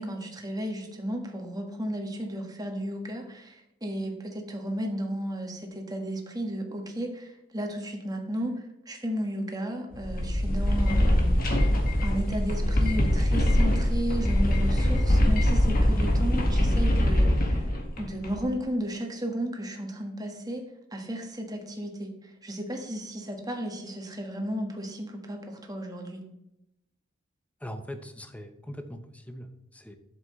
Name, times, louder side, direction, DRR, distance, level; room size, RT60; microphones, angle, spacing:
voice 1, 0.0-20.6 20.9-26.2, equal, 20° right, 3 dB, 1.6 m, -34 dB
sound 1, 9.9-18.5, left 1 dB, 50° left, 1.7 m, -23 dB
voice 2, 27.6-30.0, equal, 5° left, 7 dB, 0.9 m, -41 dB
11.5 x 7.6 x 3.2 m, 0.85 s
head